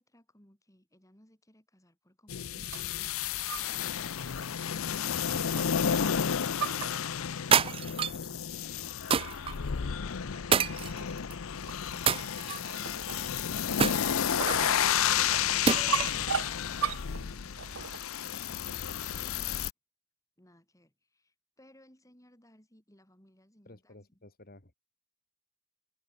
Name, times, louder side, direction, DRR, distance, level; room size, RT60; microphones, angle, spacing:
sound 1, 2.3-19.7, left 8 dB, 70° left, 0.6 m, -31 dB
sound 2, 2.6-3.9 4.3-4.6 5.3-5.9 6.3-7.6 8.3-8.4 8.9-9.0 9.6-9.9 10.2-10.4 11.0-18.4, right 7 dB, 65° right, 0.7 m, -39 dB
sound 3, 7.5-8.3 9.1-9.5 10.5-11.3 12.1-12.8 13.8-14.7 15.7-16.2, right 7 dB, 25° right, 0.3 m, -27 dB
voice 1, 20.4-24.2, equal, 15° left, 5.7 m, -62 dB
voice 2, 23.6-24.8, left 2 dB, 45° left, 2.5 m, -53 dB
head